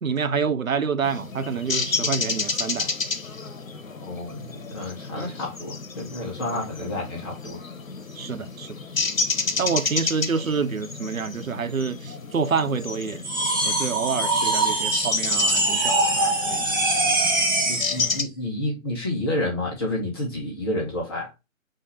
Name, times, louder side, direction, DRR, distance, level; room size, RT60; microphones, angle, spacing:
voice 1, 0.0-2.9 5.2-5.3 6.5-6.7 8.2-8.7 9.6-13.2 13.6-16.7, right 5 dB, 90° right, 0.8 m, -27 dB
sound 1, 1.0-18.2, left 4 dB, 75° left, 1.1 m, -31 dB
voice 2, 3.9-7.6 17.7-21.3, left 1 dB, 20° left, 1.1 m, -30 dB
sound 2, 13.2-18.0, right 2 dB, 15° right, 0.6 m, -23 dB
5.6 x 2.7 x 3.2 m
figure-of-eight pair, 150°, 40 cm